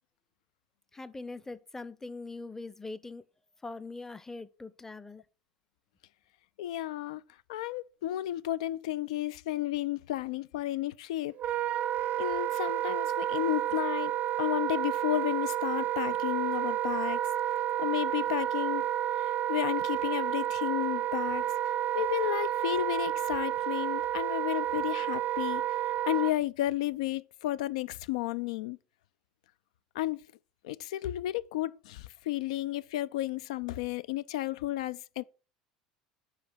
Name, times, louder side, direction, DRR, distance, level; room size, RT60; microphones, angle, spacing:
voice 1, 0.9-3.2 3.6-5.2, left 3 dB, 10° left, 0.6 m, -42 dB
voice 2, 6.6-7.2 7.5-11.4 12.2-14.1 14.4-17.2 17.8-18.8 19.2-25.6 26.1-28.8 30.0-30.2 30.6-35.2, left 14 dB, 65° left, 0.3 m, -32 dB
Wind instrument woodwind instrument, 11.4-26.3, right 12 dB, 40° right, 0.3 m, -30 dB
5.7 x 4.7 x 6.1 m
figure-of-eight pair, 70°, 4 cm